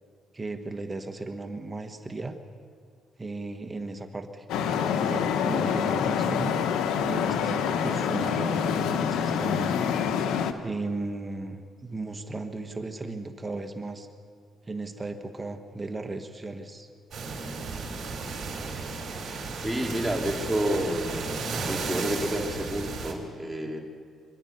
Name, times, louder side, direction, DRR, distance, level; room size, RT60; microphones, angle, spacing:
voice 1, 0.3-2.4 3.2-4.4 4.8-6.8 7.1-9.8 10.6-14.1 14.7-16.9, right 2 dB, 25° right, 6 dB, 1.5 m, -36 dB
Traffic noise roadway noise, 4.5-10.5, left 7 dB, 90° left, 1.2 m, -26 dB
sound 1, 17.1-23.1, right 4 dB, 50° right, 5.0 m, -34 dB
voice 2, 19.6-21.3 21.6-23.8, equal, 5° right, 0 dB, 3.4 m, -29 dB
25.5 x 12.0 x 9.6 m, 2.2 s
cardioid pair, 90°, 0 cm